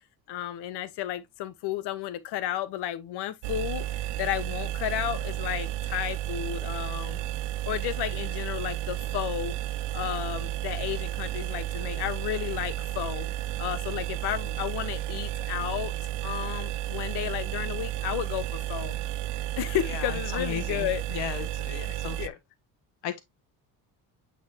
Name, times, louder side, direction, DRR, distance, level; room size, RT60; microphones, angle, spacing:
voice 1, 0.3-7.2 7.6-9.5 9.9-15.9 16.2-19.0 19.6-21.0 21.9-22.3, left 12 dB, 70° left, 1.1 m, -33 dB
sound 1, 3.4-22.3, right 13 dB, 85° right, 0.6 m, -32 dB
voice 2, 19.9-22.4 23.0-23.2, left 10 dB, 90° left, 1.4 m, -36 dB
8.6 x 4.2 x 2.8 m
cardioid pair, 180°, 41 cm